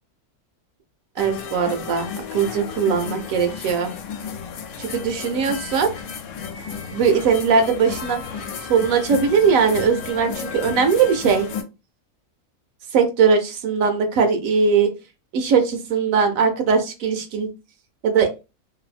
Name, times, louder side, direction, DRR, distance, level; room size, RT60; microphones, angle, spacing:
sound 1, 1.2-11.6, left 6 dB, 75° left, 1.0 m, -33 dB
voice 1, 1.2-3.9 4.8-5.9 6.9-11.5 12.9-14.9 15.3-17.5 18.0-18.3, right 6 dB, 70° right, 6 dB, 0.9 m, -20 dB
2.7 x 2.5 x 2.4 m, 0.28 s
omnidirectional pair, 1.6 m